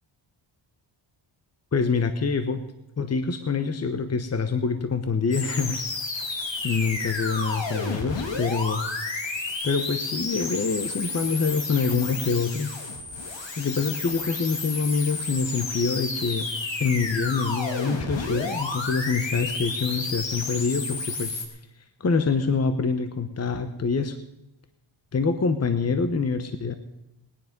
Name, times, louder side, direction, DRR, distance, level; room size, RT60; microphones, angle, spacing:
voice 1, 1.7-2.6 3.0-5.8 6.6-8.8 9.6-12.7 13.6-16.5 16.8-21.6 22.0-24.2 25.1-26.7, left 4 dB, 30° left, 10 dB, 1.1 m, -26 dB
sound 1, 5.3-21.5, left 3 dB, 65° left, 2.8 m, -31 dB
20.0 x 9.8 x 5.3 m, 0.89 s
cardioid pair, 80°, 48 cm